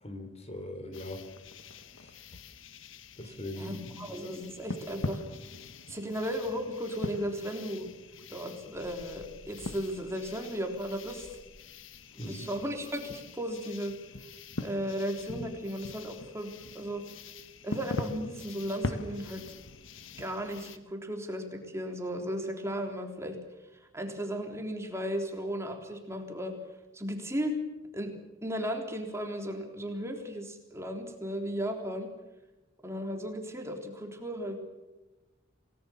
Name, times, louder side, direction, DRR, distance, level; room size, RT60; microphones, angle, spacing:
voice 1, 0.0-1.2 2.0-2.2 3.2-3.8 12.1-12.4, left 1 dB, 35° left, 7 dB, 3.7 m, -40 dB
sound 1, 0.9-20.8, left 2 dB, 80° left, 1.3 m, -42 dB
voice 2, 3.2-5.2 5.9-7.9 8.3-11.3 12.2-13.9 14.6-17.0 17.6-19.4 20.2-23.4 23.9-26.6 26.9-27.6 27.9-28.1 28.4-32.1 32.8-34.6, equal, 15° right, 3 dB, 3.6 m, -35 dB
28.5 x 18.5 x 7.2 m, 1.1 s
head